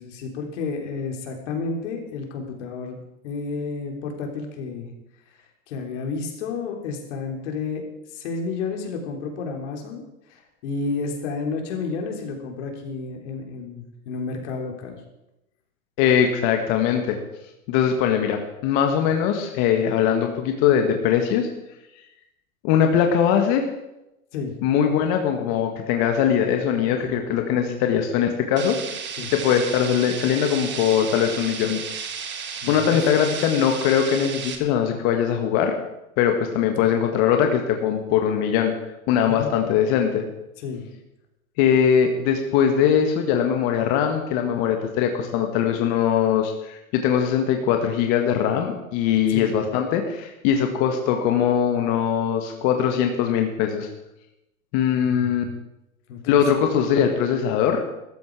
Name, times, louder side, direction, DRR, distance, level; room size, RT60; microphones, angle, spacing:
voice 1, 0.0-4.9 5.7-7.8 8.1-10.0 10.3-15.0 24.3-24.6 27.0-27.1 29.2-29.3 32.6-33.1 36.7-36.8 39.4-39.5 40.6-40.9 49.3-49.5 55.0-55.4 56.1-56.4, left 4 dB, 60° left, 3 dB, 3.9 m, -31 dB
voice 2, 16.0-17.2 17.7-21.5 22.6-23.7 24.6-28.8 29.3-31.8 32.7-35.8 36.2-38.7 39.1-40.2 41.6-53.9 54.7-55.4 56.3-57.8, left 8 dB, 45° left, 4 dB, 1.7 m, -21 dB
sound 1, 28.6-34.6, right 7 dB, 25° right, 1.9 m, -33 dB
15.5 x 13.5 x 4.9 m, 0.91 s
hypercardioid pair, 125°, 41 cm